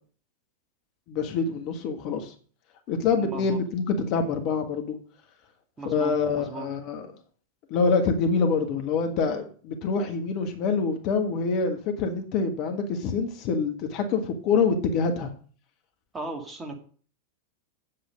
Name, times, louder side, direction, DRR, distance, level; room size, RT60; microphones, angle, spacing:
voice 1, 1.1-2.3 2.9-5.0 5.8-7.0 7.7-15.3, left 5 dB, 40° left, 5 dB, 1.5 m, -26 dB
voice 2, 3.2-3.6 5.8-6.7 16.1-16.8, right 3 dB, 15° right, 2 dB, 2.2 m, -37 dB
8.5 x 7.8 x 5.1 m, 0.44 s
figure-of-eight pair, 90°, 0 cm